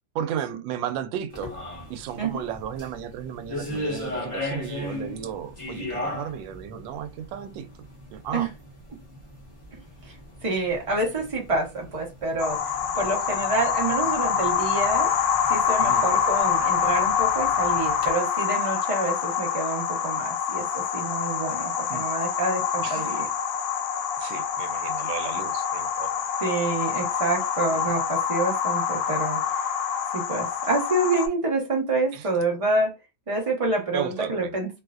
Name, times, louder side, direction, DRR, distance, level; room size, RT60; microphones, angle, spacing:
voice 1, 0.1-1.5 1.9-7.7 8.1-8.5 15.8-16.0 21.9-22.0 22.8-23.1 24.2-26.1 27.7-27.9 32.1-32.3 33.9-34.5, right 9 dB, 80° right, 1.3 m, -34 dB
sound 1, 1.3-18.1, left 1 dB, 20° left, 1.1 m, -38 dB
voice 2, 10.4-15.1 15.5-23.3 26.4-29.7 30.1-32.9 33.3-34.8, right 2 dB, 60° right, 0.3 m, -27 dB
sound 2, 12.4-31.3, left 7 dB, 80° left, 1.3 m, -26 dB
3.2 x 3.0 x 2.4 m
omnidirectional pair, 2.0 m